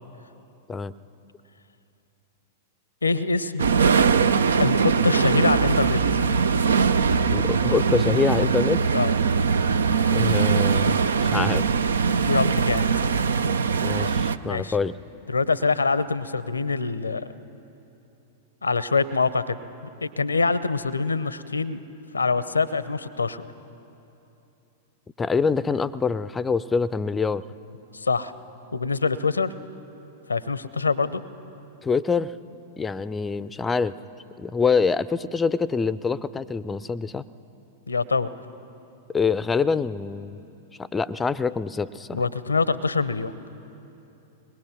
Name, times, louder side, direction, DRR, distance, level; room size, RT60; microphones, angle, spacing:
voice 1, 3.0-3.7 4.6-6.4 7.2-7.3 8.9-9.1 12.1-12.9 14.4-14.7 15.3-17.3 18.6-19.6 20.0-21.8 22.1-23.4 27.9-28.3 28.7-29.5 30.3-31.2 37.9-38.3 42.1-43.4, left 4 dB, 85° left, 16 dB, 0.6 m, -25 dB
sound 1, 3.6-14.4, right 5 dB, 75° right, 0.5 m, -21 dB
voice 2, 7.3-8.8 10.1-11.7 13.8-15.0 25.2-27.4 31.8-32.3 32.8-33.9 34.4-37.2 39.1-40.4 40.8-42.2, left 5 dB, 15° left, 17 dB, 0.5 m, -25 dB
23.0 x 20.5 x 6.0 m, 3.0 s
figure-of-eight pair, 95°, 0 cm